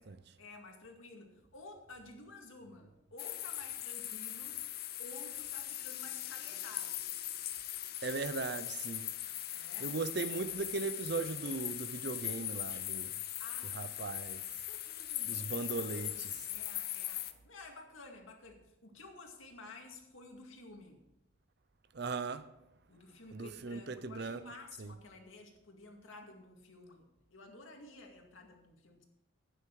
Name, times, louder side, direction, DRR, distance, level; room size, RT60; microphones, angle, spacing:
voice 1, 0.0-4.6 5.0-7.0 9.5-10.0 13.4-14.3 14.7-21.0 22.9-29.0, left 2 dB, 80° left, 2.2 m, -53 dB
sound 1, 3.2-17.3, left 13 dB, 50° left, 0.7 m, -40 dB
voice 2, 8.0-9.1 9.8-13.1 13.7-14.4 15.3-16.4 21.9-22.5 23.3-24.4 24.8-24.9, right 4 dB, 55° right, 0.6 m, -38 dB
11.5 x 9.2 x 4.7 m
head